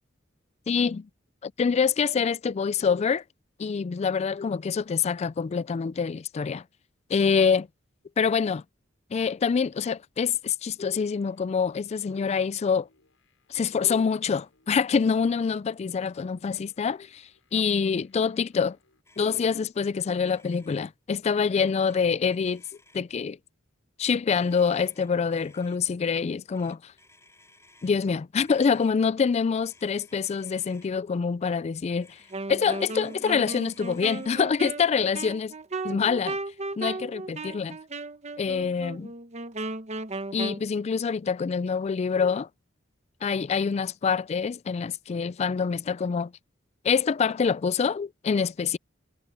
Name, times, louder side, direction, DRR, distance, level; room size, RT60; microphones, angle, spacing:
voice 1, 0.7-1.1 1.4-3.2 3.6-6.6 7.1-7.7 8.2-8.6 9.1-12.9 13.5-17.2 17.5-18.8 19.2-22.6 22.9-23.4 24.0-26.8 27.8-32.1 32.5-35.5 35.8-36.4 36.8-37.8 38.4-39.1 40.3-42.5 43.2-46.3 46.8-48.8, left 6 dB, 35° left, 0.3 m, -26 dB
sound 1, 11.0-19.0, left 3 dB, 75° left, 7.7 m, -68 dB
Motor vehicle (road), 19.0-19.4 19.7-19.9 20.2-20.9 21.6-22.0 22.3-23.2 24.3-25.8 26.5-28.0 28.4-28.9 29.6-30.9 32.0-34.5, left 2 dB, 15° left, 4.5 m, -58 dB
Wind instrument woodwind instrument, 32.3-40.6, right 3 dB, 35° right, 1.0 m, -36 dB
head